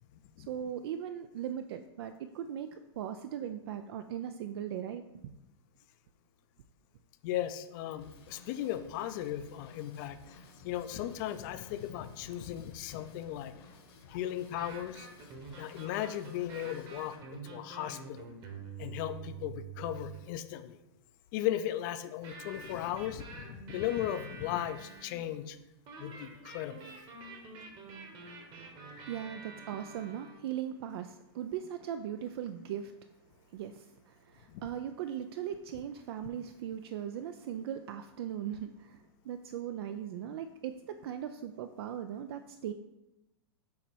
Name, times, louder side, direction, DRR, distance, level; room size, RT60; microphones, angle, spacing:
voice 1, 0.5-5.3 29.1-32.9 33.5-40.7 41.0-42.7, right 9 dB, 65° right, 9 dB, 0.4 m, -39 dB
voice 2, 7.2-10.2 10.6-13.5 14.1-15.1 15.6-18.3 18.8-20.8 21.3-25.6 26.0-26.9 34.5-34.7, left 12 dB, 45° left, 11 dB, 0.5 m, -36 dB
Drum kit / Drum, 8.0-17.2, left 3 dB, 60° left, 1.2 m, -55 dB
sound 1, 14.4-20.3 22.2-25.2 25.9-30.3, right 5 dB, 30° right, 1.1 m, -47 dB
7.1 x 2.9 x 4.5 m, 0.94 s
hypercardioid pair, 140°, 14 cm